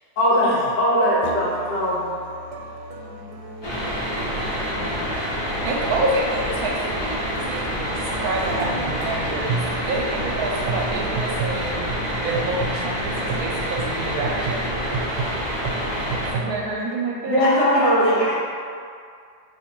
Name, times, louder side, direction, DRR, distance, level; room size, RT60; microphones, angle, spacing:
voice 1, 0.2-0.5 0.8-2.1 3.2-3.3 4.2-5.1 17.3-18.1, equal, 90° left, -6 dB, 1.7 m, -21 dB
Musical instrument, 1.2-16.7, right 4 dB, 90° right, 1.2 m, -33 dB
sound 1, 3.6-16.3, equal, 40° left, 0.3 m, -27 dB
voice 2, 5.6-14.7 16.2-17.5, right 2 dB, 70° right, -1 dB, 1.0 m, -28 dB
voice 3, 17.4-18.4, equal, 70° left, -10 dB, 2.0 m, -29 dB
6.4 x 2.7 x 2.9 m, 2.3 s
omnidirectional pair, 1.8 m